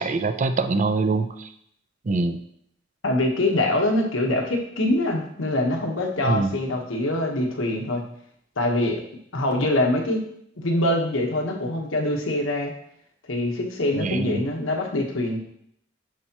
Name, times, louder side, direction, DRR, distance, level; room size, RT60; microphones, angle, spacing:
voice 1, 0.0-1.5 2.1-2.4 6.2-6.5 14.0-14.4, right 3 dB, 40° right, 10 dB, 0.4 m, -24 dB
voice 2, 3.0-8.0 8.6-9.0 9.3-10.2 10.6-12.7 13.3-15.4, left 1 dB, 75° left, 2 dB, 1.2 m, -24 dB
9.7 x 4.4 x 3.0 m, 0.69 s
head